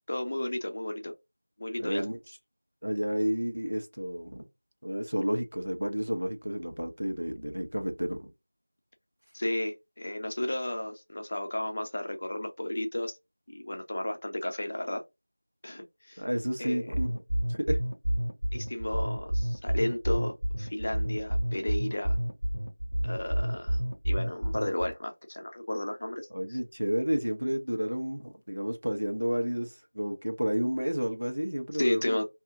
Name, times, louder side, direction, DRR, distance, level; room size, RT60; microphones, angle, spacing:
voice 1, 0.1-1.1 1.6-2.0 9.3-13.2 13.5-15.0 15.6-16.2 16.6-16.9 18.5-22.2 23.0-26.6 31.7-32.2, left 1 dB, 30° left, 0.5 m, -33 dB
voice 2, 1.8-2.2 2.8-4.5 4.8-8.3 16.2-17.2 17.5-17.8 26.3-32.2, equal, 85° right, 1.0 m, -31 dB
sound 1, 16.9-24.9, equal, 60° right, 1.1 m, -29 dB
2.7 x 2.4 x 3.7 m
figure-of-eight pair, 175°, 0 cm